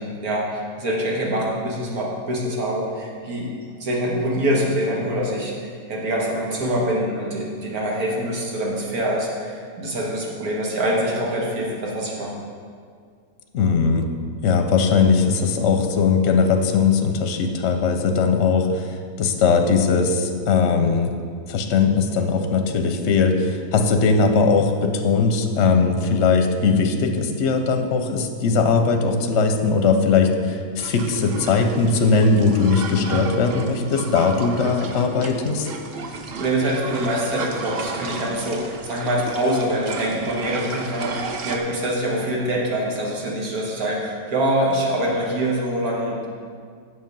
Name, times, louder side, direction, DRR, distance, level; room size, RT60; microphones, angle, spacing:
voice 1, 0.0-3.5 3.8-12.3 35.9-36.0 36.4-46.3, right 1 dB, 80° right, -3 dB, 2.0 m, -24 dB
voice 2, 13.5-14.1 14.4-18.9 19.2-21.2 21.5-35.7, left 5 dB, 60° left, 5 dB, 0.8 m, -19 dB
sound 1, 30.8-41.6, right 4 dB, 55° right, 0.7 m, -33 dB
7.7 x 6.3 x 5.4 m, 2.1 s
omnidirectional pair, 1.6 m